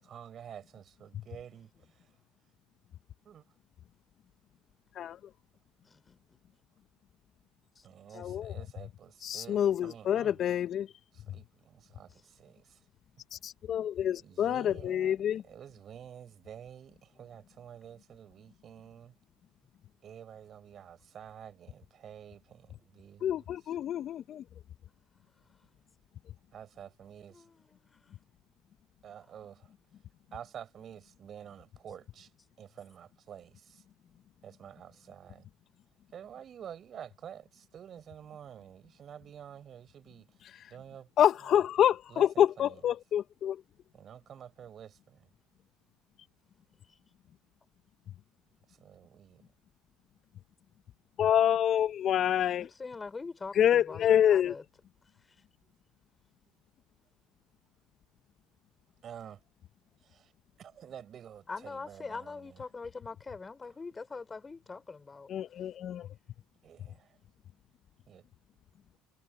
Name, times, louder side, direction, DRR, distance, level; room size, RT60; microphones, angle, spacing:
voice 1, 0.0-2.0 3.2-3.4 7.8-10.3 11.1-12.8 14.2-15.2 15.5-19.1 20.0-23.4 26.5-27.4 29.0-29.7 30.3-32.3 32.6-33.8 34.4-35.4 36.1-40.3 40.7-41.1 42.1-42.8 43.9-45.3 48.8-49.4 55.6-55.7 59.0-59.4 60.0-60.3 60.6-62.6 66.6-67.2 68.1-68.2, right 9 dB, 50° right, 5.9 m, -49 dB
voice 2, 5.9-6.4 8.1-8.2 17.1-17.4 27.3-28.1 52.6-54.6 61.5-65.3, left 4 dB, 25° left, 4.4 m, -43 dB
voice 3, 8.1-8.6 9.2-10.9 13.3-15.4 23.2-24.4 41.2-43.6 51.2-52.7 53.5-54.5 65.3-66.1, left 10 dB, 50° left, 1.1 m, -27 dB
hypercardioid pair, 65°, 0 cm